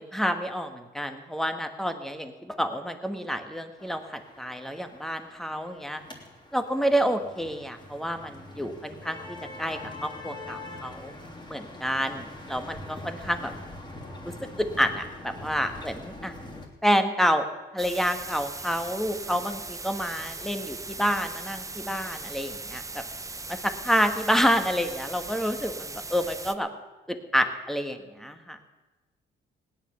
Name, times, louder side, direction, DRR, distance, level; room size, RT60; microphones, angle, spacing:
voice 1, 0.0-6.0 6.5-9.2 9.6-11.1 11.5-13.5 14.6-16.3 16.8-17.4 17.7-23.0 23.5-26.7 27.1-28.6, equal, ahead, 7 dB, 1.6 m, -28 dB
sound 1, 3.8-16.7, left 2 dB, 20° left, 3.4 m, -43 dB
sound 2, 17.8-26.5, right 3 dB, 15° right, 0.8 m, -39 dB
17.0 x 10.5 x 6.9 m, 1.2 s
cardioid pair, 90°, 20 cm